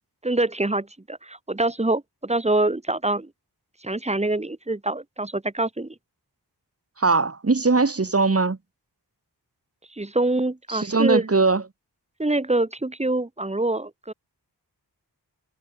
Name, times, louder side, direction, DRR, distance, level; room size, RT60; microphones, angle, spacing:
voice 1, 0.2-3.3 3.8-5.9 9.9-11.2 12.2-14.1, right 2 dB, 15° right, 1.2 m, -25 dB
voice 2, 7.0-8.6 10.7-11.6, right 3 dB, 35° right, 1.6 m, -20 dB
cardioid pair, 45°, 41 cm